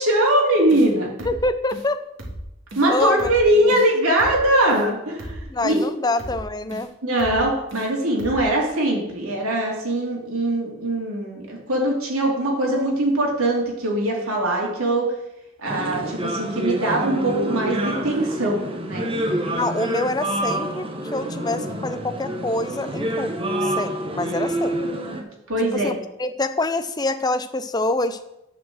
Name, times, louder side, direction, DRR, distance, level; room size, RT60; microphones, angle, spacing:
voice 1, 0.0-1.3 2.7-5.8 7.0-15.1 15.6-19.1 24.2-24.3 25.5-25.9, right 1 dB, 85° right, -1 dB, 2.9 m, -21 dB
sound 1, 0.7-0.9 1.2-1.4 1.7-1.9 2.2-2.4 2.7-2.9 3.2-3.4 3.7-3.9 4.2-4.4 4.7-4.9 5.2-5.4 5.7-5.9 6.2-6.4 6.7-6.9 7.2-7.4 7.7-7.9 8.2-8.4, right 1 dB, 60° right, 1.9 m, -35 dB
voice 2, 1.2-2.0 2.9-3.3 3.6-3.8 5.5-6.9 19.5-25.0 25.7-28.2, left 2 dB, 20° left, 10 dB, 0.5 m, -26 dB
sound 2, 15.6-25.2, right 1 dB, 25° right, 1.0 m, -27 dB
10.0 x 4.4 x 7.7 m, 0.88 s
head